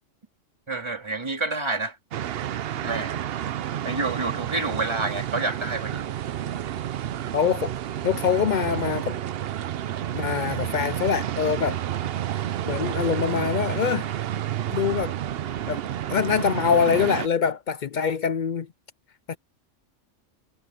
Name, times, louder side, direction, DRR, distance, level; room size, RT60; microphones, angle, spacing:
voice 1, 0.7-2.0 2.8-3.2 3.8-6.1, right 3 dB, 20° right, 2.6 m, -28 dB
sound 1, 2.1-17.3, right 11 dB, 60° right, 0.7 m, -30 dB
voice 2, 7.3-7.7 8.0-9.2 10.1-11.8 12.7-14.1 14.7-15.1 15.7-15.8 16.1-18.7 19.3-19.4, left 7 dB, 60° left, 0.5 m, -24 dB
omnidirectional pair, 1.3 m